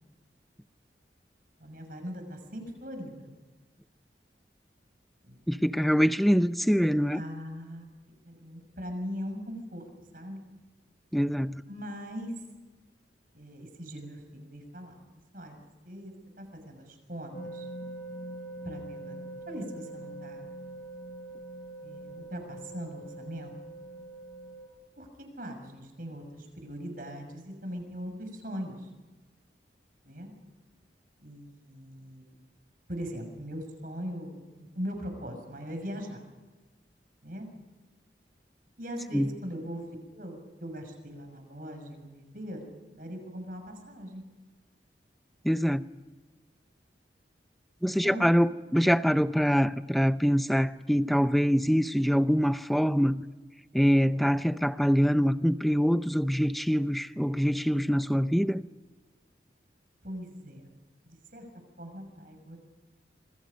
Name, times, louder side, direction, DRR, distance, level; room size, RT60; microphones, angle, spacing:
voice 1, 1.6-3.3 5.2-5.6 7.1-7.9 8.3-9.8 10.1-10.4 11.7-12.3 13.3-15.0 15.3-17.7 18.6-20.5 21.8-23.5 25.0-28.9 30.0-30.3 31.2-32.3 32.9-36.3 37.2-37.5 38.8-44.2 47.8-48.3 60.0-60.7 61.0-61.5 61.8-62.6, equal, 50° right, 6.4 m, -40 dB
voice 2, 5.5-7.2 11.1-11.6 39.1-39.3 45.4-45.8 47.8-53.2 53.7-58.6, equal, ahead, 0.6 m, -24 dB
sound 1, 17.3-24.7, right 2 dB, 60° left, 7.5 m, -43 dB
27.0 x 25.0 x 5.3 m
head